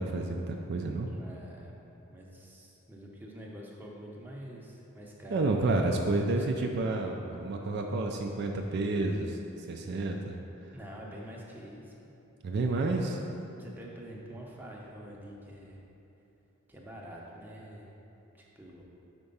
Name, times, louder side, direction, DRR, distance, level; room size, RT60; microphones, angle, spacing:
voice 1, 0.0-1.1 5.3-10.4 12.4-13.1, right 2 dB, 50° right, 2 dB, 0.3 m, -30 dB
voice 2, 1.1-1.8 2.1-5.5 10.7-11.9 12.8-13.1 13.6-15.8 16.7-18.0 18.3-18.8, equal, 10° right, -3 dB, 0.7 m, -46 dB
4.7 x 4.4 x 5.4 m, 2.9 s
head